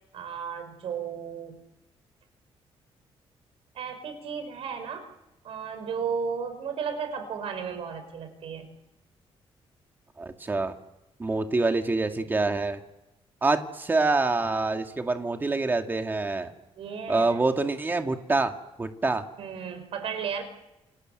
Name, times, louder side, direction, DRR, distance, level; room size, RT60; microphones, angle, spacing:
voice 1, 0.1-1.6 3.7-5.1 5.4-8.7 16.8-17.4 19.4-20.4, right 6 dB, 70° right, 9 dB, 5.2 m, -34 dB
voice 2, 10.2-10.7 11.2-12.8 13.4-16.5 17.1-18.5 18.8-19.2, right 3 dB, 20° right, 5 dB, 2.1 m, -26 dB
29.0 x 26.5 x 7.8 m, 0.98 s
cardioid pair, 155°, 10 cm